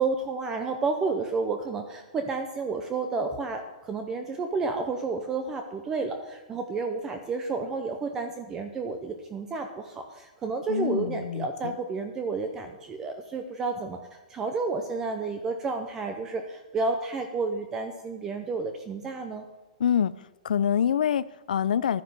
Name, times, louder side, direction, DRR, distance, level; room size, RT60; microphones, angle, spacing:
voice 1, 0.0-19.4, right 4 dB, 10° right, 6 dB, 0.6 m, -31 dB
voice 2, 10.7-11.7 19.8-20.1 20.4-22.0, left 8 dB, 90° left, 18 dB, 0.6 m, -26 dB
12.5 x 9.7 x 6.7 m, 1.1 s
hypercardioid pair, 180°, 4 cm